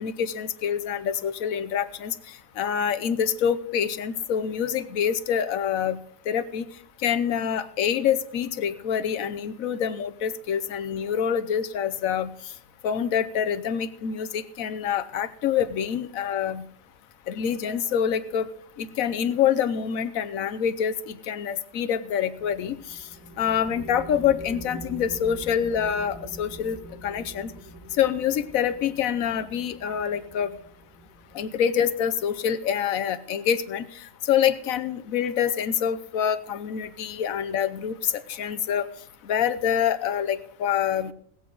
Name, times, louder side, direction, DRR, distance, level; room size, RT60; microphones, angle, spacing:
voice 1, 0.0-2.1 2.6-6.0 6.3-6.6 7.0-12.3 12.8-16.6 17.3-18.5 18.8-22.8 23.4-26.8 27.0-27.5 28.0-30.5 31.3-33.9 34.3-38.9 39.3-41.1, left 8 dB, 75° left, 11 dB, 1.2 m, -26 dB
sound 1, 22.4-32.4, right 2 dB, 10° right, 1.7 m, -44 dB
21.0 x 8.1 x 3.9 m, 0.63 s
omnidirectional pair, 1.4 m